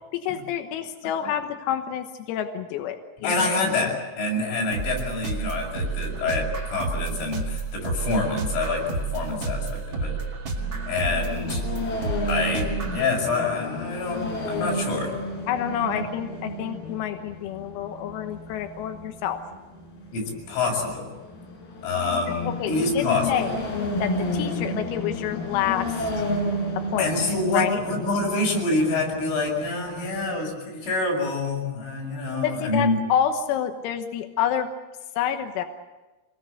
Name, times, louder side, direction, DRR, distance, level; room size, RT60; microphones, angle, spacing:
voice 1, 0.1-3.8 15.5-19.4 22.4-23.6 24.0-26.1 26.9-27.2 27.5-27.8 32.4-34.7 35.2-35.6, left 9 dB, 85° left, 6 dB, 4.0 m, -28 dB
voice 2, 3.2-10.2 10.9-11.6 12.3-15.2 15.9-16.0 20.1-21.1 21.8-23.4 27.0-33.0, left 3 dB, 65° left, 0 dB, 9.2 m, -26 dB
sound 1, 4.7-13.1, right 4 dB, 65° right, 1.1 m, -30 dB
sound 2, 10.6-30.4, left 1 dB, 50° left, 5.8 m, -32 dB
27.0 x 20.0 x 8.2 m, 1.1 s
omnidirectional pair, 6.0 m